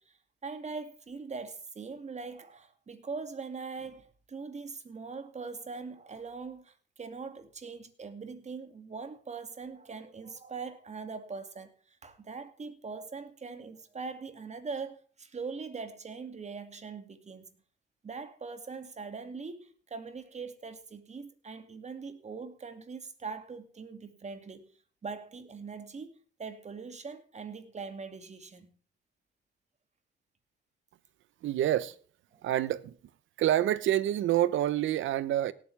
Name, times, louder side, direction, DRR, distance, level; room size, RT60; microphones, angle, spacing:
voice 1, 0.0-17.6 18.0-24.7 25.0-28.8 32.3-32.5, right 4 dB, 35° right, 2.4 m, -42 dB
voice 2, 31.4-31.9 32.4-33.0 33.4-35.5, right 12 dB, 75° right, 1.0 m, -27 dB
18.0 x 8.9 x 3.4 m
cardioid pair, 90°, 20 cm